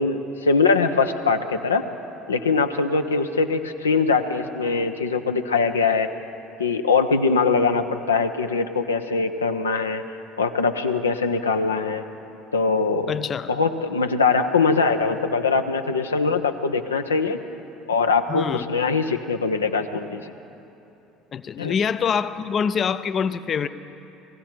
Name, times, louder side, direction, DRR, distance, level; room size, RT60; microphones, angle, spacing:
voice 1, 0.0-1.8 2.3-6.1 6.6-10.0 10.4-12.1 12.5-13.1 13.5-17.4 17.9-20.3 21.6-21.8, left 4 dB, 90° left, 6 dB, 0.5 m, -22 dB
voice 2, 13.1-13.5 18.3-18.7 21.3-23.7, left 7 dB, 40° left, 12 dB, 0.4 m, -25 dB
18.5 x 15.0 x 4.4 m, 2.9 s
hypercardioid pair, 65°, 0 cm